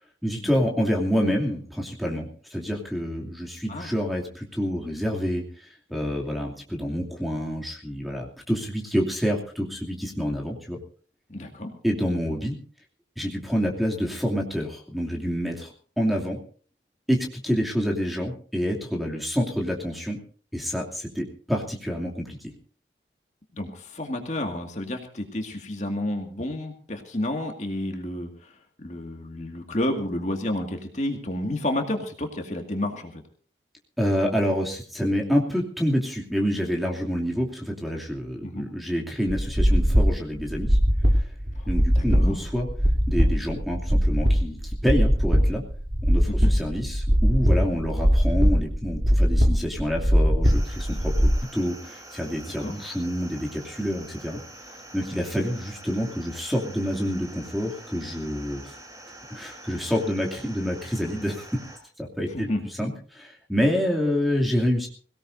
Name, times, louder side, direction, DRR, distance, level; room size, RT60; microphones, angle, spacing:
voice 1, 0.2-10.8 11.8-12.6 13.2-16.4 17.1-20.2 20.5-22.5 34.0-40.8 41.2-41.3 41.7-42.7 43.1-45.6 46.1-54.4 54.9-58.7 59.3-61.4 62.0-62.5 62.8-64.9, equal, ahead, -1 dB, 2.6 m, -27 dB
voice 2, 11.3-11.7 23.5-33.2 38.4-38.7 41.5-41.7 42.0-42.4 46.3-46.5 52.5-52.8 62.3-62.6, left 1 dB, 40° left, 3 dB, 2.2 m, -30 dB
sound 1, 39.3-51.3, equal, 55° right, 3.2 m, -21 dB
sound 2, 50.4-61.8, right 1 dB, 20° right, 3.8 m, -45 dB
23.5 x 17.5 x 2.7 m, 0.43 s
head